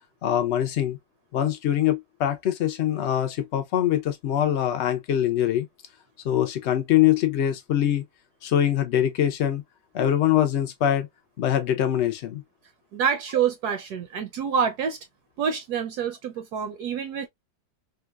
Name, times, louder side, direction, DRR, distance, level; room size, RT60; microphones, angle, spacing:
voice 1, 0.2-1.0 1.3-5.7 6.2-8.0 8.4-9.6 9.9-11.1 11.4-12.4, left 11 dB, 70° left, 0.6 m, -23 dB
voice 2, 12.9-15.0 15.4-17.3, right 7 dB, 70° right, 1.1 m, -27 dB
3.8 x 2.3 x 2.3 m
omnidirectional pair, 1.9 m